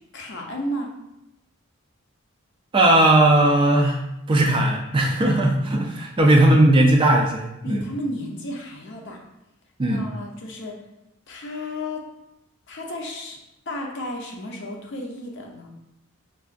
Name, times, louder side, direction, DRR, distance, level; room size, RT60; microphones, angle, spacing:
voice 1, 0.1-0.9 7.6-9.2 9.8-10.8 11.3-12.1 12.7-13.4 13.7-15.7, left 1 dB, 55° left, 1 dB, 0.6 m, -33 dB
voice 2, 2.7-4.0 4.3-7.8 9.8-10.0, right 1 dB, 25° right, 1 dB, 0.3 m, -17 dB
4.6 x 2.4 x 2.5 m, 0.87 s
head